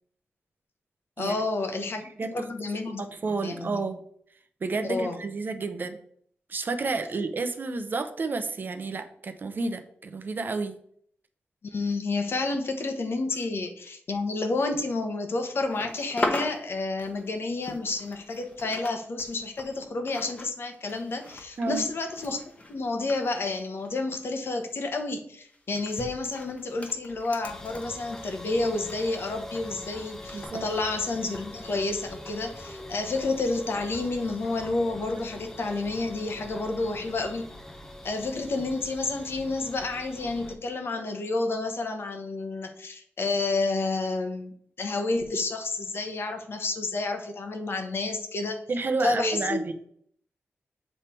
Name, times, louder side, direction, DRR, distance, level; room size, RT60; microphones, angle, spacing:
voice 1, 1.2-3.9 4.9-5.2 11.7-22.4 22.7-37.5 38.0-48.6 49.0-49.6, left 3 dB, 60° left, 5 dB, 1.1 m, -30 dB
voice 2, 2.0-2.3 2.8-4.0 4.6-6.0 6.5-10.8 21.6-21.8 30.3-30.6 48.7-49.7, right 3 dB, 45° right, 8 dB, 0.7 m, -30 dB
sound 1, 15.6-18.9 19.2-24.2 24.4-24.7 25.5-29.7 30.3-30.5, left 2 dB, 30° left, 1.1 m, -39 dB
sound 2, 27.4-40.6, left 1 dB, 10° left, 0.7 m, -44 dB
7.3 x 3.4 x 4.4 m, 0.63 s
wide cardioid pair, 120°, 4 cm